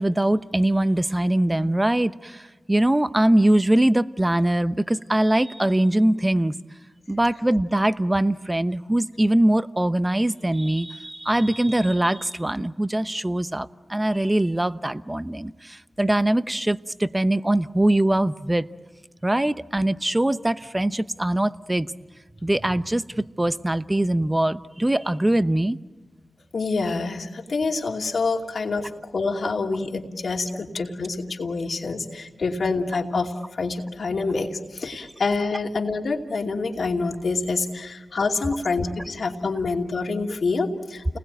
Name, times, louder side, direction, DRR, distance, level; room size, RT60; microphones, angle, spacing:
voice 1, 0.0-6.5 7.1-18.7 19.2-21.9 22.4-25.8, right 1 dB, 20° right, 13 dB, 0.9 m, -22 dB
voice 2, 26.5-41.2, left 3 dB, 75° left, 1 dB, 2.6 m, -27 dB
30.0 x 20.5 x 9.1 m, 1.3 s
cardioid pair, 45°, 0 cm